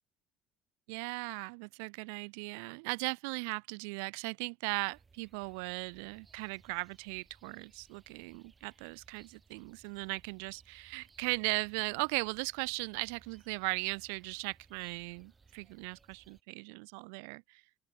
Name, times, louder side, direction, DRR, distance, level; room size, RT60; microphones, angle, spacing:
voice 1, 0.9-17.6, right 37 dB, 80° right, 0.4 m, -38 dB
sound 1, 4.9-16.4, right 4 dB, 25° right, 2.4 m, -64 dB
open air
hypercardioid pair, 75°, 0 cm